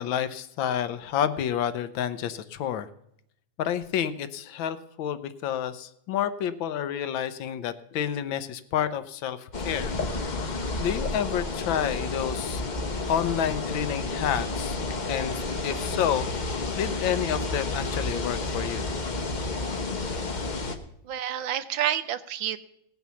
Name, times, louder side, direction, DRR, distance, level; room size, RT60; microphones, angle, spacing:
voice 1, 0.0-2.9 3.6-9.9 10.4-10.5 10.8-12.6 13.1-14.8 15.1-16.3 16.7-18.9, left 9 dB, 80° left, 12 dB, 1.5 m, -29 dB
sound 1, 9.5-20.8, left 3 dB, 40° left, 0.7 m, -31 dB
voice 2, 21.0-22.6, right 10 dB, 80° right, 12 dB, 1.5 m, -29 dB
17.5 x 6.2 x 6.9 m, 0.75 s
omnidirectional pair, 2.1 m